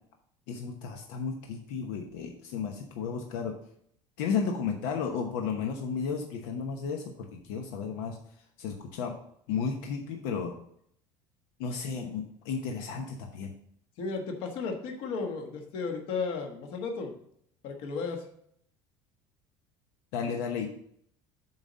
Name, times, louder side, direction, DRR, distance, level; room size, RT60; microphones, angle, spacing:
voice 1, 0.5-3.5 4.2-8.2 8.6-9.1 9.5-10.6 11.6-13.5 20.1-20.7, left 6 dB, 80° left, 3 dB, 0.9 m, -33 dB
voice 2, 14.0-17.1 17.6-18.3, left 4 dB, 50° left, 3 dB, 1.4 m, -34 dB
7.4 x 4.1 x 6.3 m, 0.68 s
cardioid pair, 175°, 11 cm